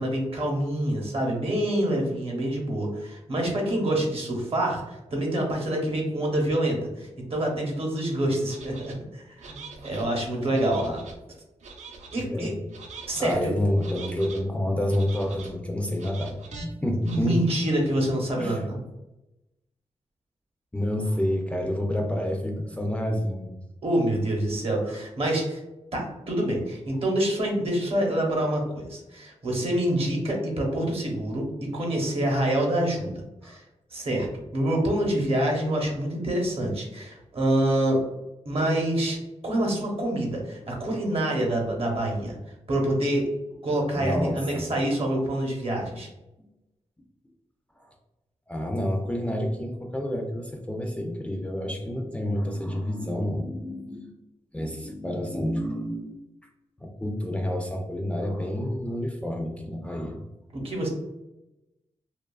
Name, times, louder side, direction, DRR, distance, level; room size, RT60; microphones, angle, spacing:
voice 1, 0.0-11.0 12.1-12.5 13.1-13.5 17.0-18.8 23.8-25.6 25.9-33.1 33.4-33.6 33.9-34.3 34.5-38.0 38.4-39.2 39.4-42.4 42.7-43.3 43.6-46.1 60.5-60.9, right 1 dB, 50° right, 0 dB, 0.8 m, -26 dB
sound 1, 8.5-8.9 9.4-10.1 10.5-11.2 11.6-12.2 12.7-13.4 13.8-14.4 14.9-15.5 16.0-16.7 17.0-17.2, right 4 dB, 70° right, 0.5 m, -43 dB
voice 2, 12.2-12.6 13.2-17.4 18.4-18.7 20.7-23.5 24.8-24.9 33.4-33.6 43.9-44.6 47.8-47.9 48.5-54.1 54.5-56.1 56.8-60.2, left 1 dB, 10° left, 1 dB, 0.3 m, -29 dB
2.6 x 2.3 x 2.2 m, 0.96 s
cardioid pair, 85°, 12 cm